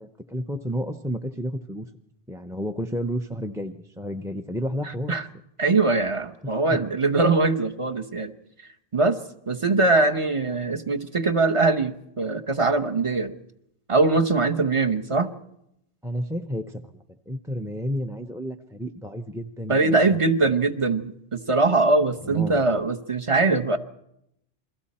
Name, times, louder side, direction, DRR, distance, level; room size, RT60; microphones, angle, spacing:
voice 1, 0.0-1.9 2.3-5.2 6.7-6.8 16.0-16.9 17.3-20.2 22.2-22.6, equal, 5° right, 5 dB, 0.5 m, -31 dB
voice 2, 5.6-8.3 8.9-9.2 9.5-13.3 13.9-15.3 19.7-23.8, right 3 dB, 35° right, 5 dB, 1.0 m, -22 dB
28.5 x 22.5 x 4.3 m, 0.79 s
omnidirectional pair, 1.0 m